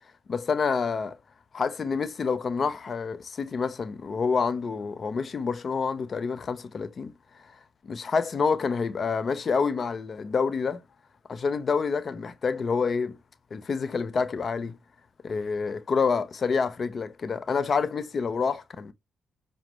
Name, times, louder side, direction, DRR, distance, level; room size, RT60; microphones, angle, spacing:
voice 1, 0.3-1.2 1.5-7.1 7.5-7.6 7.8-10.8 11.3-13.2 13.5-14.8 15.2-18.9, left 5 dB, 50° left, 0.5 m, -28 dB
5.9 x 2.1 x 2.9 m
supercardioid pair, 55°, 0 cm